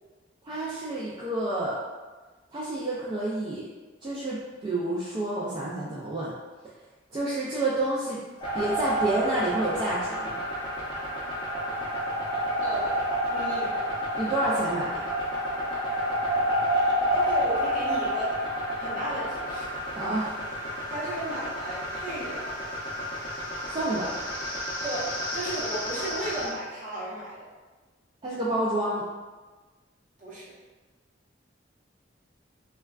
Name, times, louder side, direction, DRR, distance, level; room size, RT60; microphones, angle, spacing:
voice 1, 0.4-1.8 2.5-3.6 4.0-6.3 7.1-8.2 8.5-10.4 14.2-15.1 19.9-20.3 23.7-24.2 28.2-29.0, right 2 dB, 25° right, -7 dB, 0.3 m, -29 dB
sound 1, 8.4-26.5, equal, 25° left, 0.6 m, -30 dB
voice 2, 12.6-13.0 13.3-13.8 17.1-18.4 18.8-19.8 20.9-22.5 24.8-27.4 30.2-30.5, right 1 dB, 45° right, -8 dB, 0.9 m, -34 dB
3.4 x 2.2 x 2.2 m, 1.3 s
head